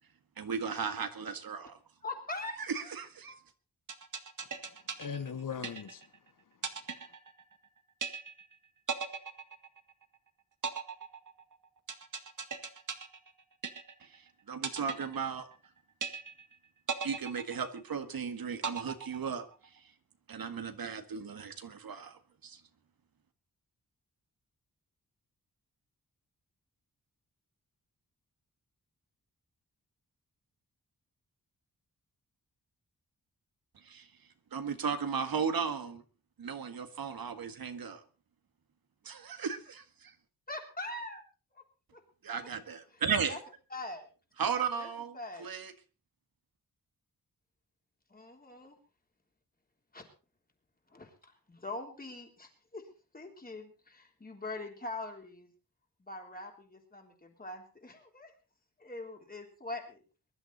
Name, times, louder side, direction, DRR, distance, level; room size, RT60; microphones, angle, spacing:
voice 1, 0.4-1.8 2.6-3.3 14.0-15.5 17.0-19.8 20.3-22.6 33.7-34.1 34.5-36.0 36.4-38.0 39.0-40.1 42.2-43.4 44.4-45.7, right 6 dB, 75° right, 1.8 m, -36 dB
voice 2, 2.0-2.6 2.8-2.9 3.3-3.4 40.5-41.2 41.5-41.6 41.9-42.0 42.4-42.5 43.3-43.4 43.7-44.0 44.8-44.9 45.1-45.5 48.1-48.8 49.9-50.1 50.9-52.8 53.1-55.5 56.0-58.3 58.8-60.0, left 2 dB, 25° left, 3.5 m, -43 dB
sound 1, 3.9-6.2 6.6-7.7 8.0-8.5 8.9-10.1 10.6-14.2 14.6-15.7 16.0-16.5 16.9-18.1 18.6-19.6, right 6 dB, 60° right, 1.8 m, -38 dB
voice 3, 4.4-7.1, left 7 dB, 65° left, 1.2 m, -42 dB
22.5 x 11.5 x 4.1 m
wide cardioid pair, 145°, 35 cm